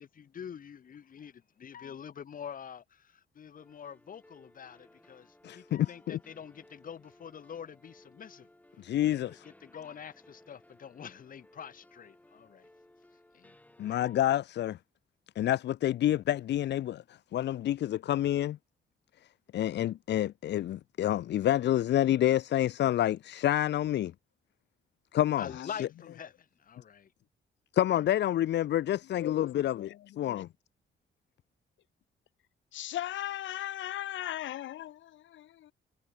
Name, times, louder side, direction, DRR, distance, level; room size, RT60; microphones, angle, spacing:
voice 1, 0.0-8.5 8.7-12.7 13.3-13.6 13.8-14.2 25.4-27.1, left 8 dB, 45° left, 1.4 m, -46 dB
sound 1, 3.6-14.4, left 1 dB, 10° left, 6.0 m, -60 dB
voice 2, 5.4-6.2 8.8-9.4 13.8-14.8 15.4-17.0 17.3-18.6 19.5-24.1 25.1-25.5 27.7-30.5, left 12 dB, 65° left, 0.6 m, -28 dB
voice 3, 29.2-29.5 29.8-30.5 32.7-35.7, left 13 dB, 90° left, 1.9 m, -38 dB
cardioid pair, 120°, 19 cm